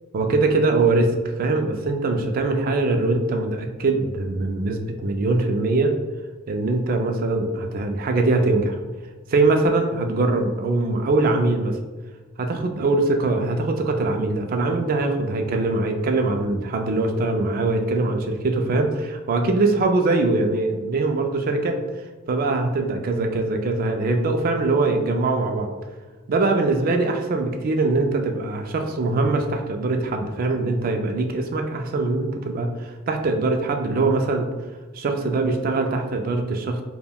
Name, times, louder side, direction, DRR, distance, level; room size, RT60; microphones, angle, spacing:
voice 1, 0.1-5.9 6.5-8.8 9.3-11.8 12.4-21.8 22.3-25.7 26.3-34.5 34.9-36.8, right 3 dB, 45° right, 4 dB, 0.3 m, -22 dB
3.4 x 2.2 x 2.2 m, 1.3 s
head